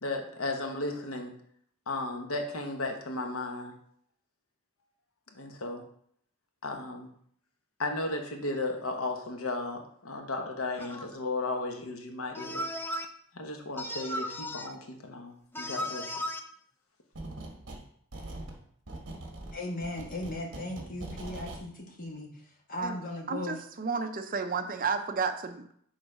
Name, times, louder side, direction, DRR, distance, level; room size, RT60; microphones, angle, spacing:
voice 1, 0.0-1.3 1.9-3.7 5.3-5.8 6.6-7.1 7.8-12.7 13.3-16.1, left 2 dB, 70° left, 3 dB, 1.0 m, -35 dB
sound 1, 10.8-11.1 12.3-13.0 13.8-14.7 15.5-16.4, left 1 dB, 10° left, 0.4 m, -35 dB
sound 2, 17.1-17.8 18.1-21.6, right 2 dB, 55° right, 1.2 m, -42 dB
voice 2, 19.5-22.4 22.7-23.6, left 1 dB, 40° left, 0 dB, 1.3 m, -37 dB
voice 3, 23.3-25.7, right 5 dB, 40° right, 7 dB, 0.5 m, -32 dB
6.5 x 3.9 x 4.9 m, 0.64 s
head